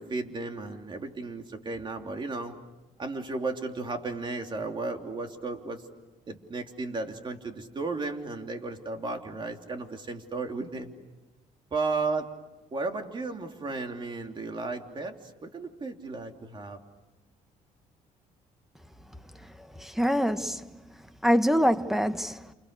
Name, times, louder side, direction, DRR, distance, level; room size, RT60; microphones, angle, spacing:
voice 1, 0.0-2.5 3.0-5.8 6.3-10.9 11.7-12.3 12.7-16.8, right 3 dB, 35° right, 3.1 m, -34 dB
voice 2, 19.8-20.6 21.2-22.4, equal, ahead, 1.3 m, -24 dB
29.5 x 28.5 x 6.8 m
cardioid pair, 110°, 14 cm